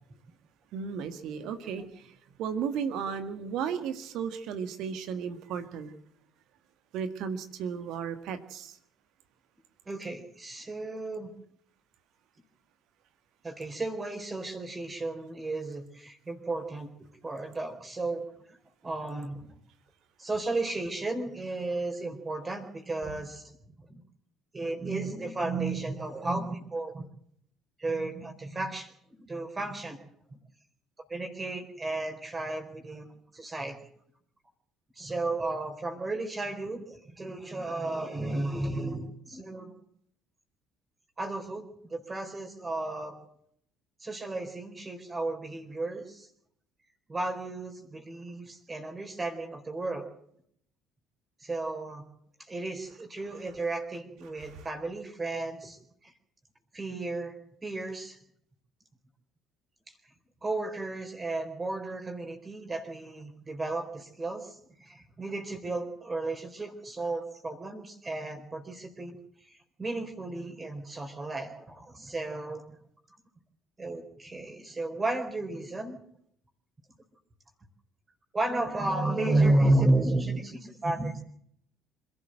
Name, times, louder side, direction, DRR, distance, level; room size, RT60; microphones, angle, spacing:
voice 1, 0.7-5.9 6.9-8.8 53.2-53.4 54.4-54.7, right 7 dB, 60° right, 9 dB, 1.8 m, -35 dB
voice 2, 9.9-11.3 13.4-16.9 17.2-18.6 18.8-19.5 20.2-23.4 23.9-24.0 24.5-27.0 27.8-28.9 29.2-30.0 31.1-33.1 33.3-33.8 35.0-39.7 41.2-41.6 41.9-43.2 44.0-46.3 47.1-50.1 51.4-52.0 52.4-56.1 56.7-57.4 57.6-58.2 59.9-60.0 60.4-69.1 69.5-72.6 73.8-76.0 78.3-81.2, right 2 dB, 25° right, 5 dB, 4.2 m, -33 dB
26.5 x 12.5 x 7.8 m, 0.68 s
figure-of-eight pair, 55°, 0 cm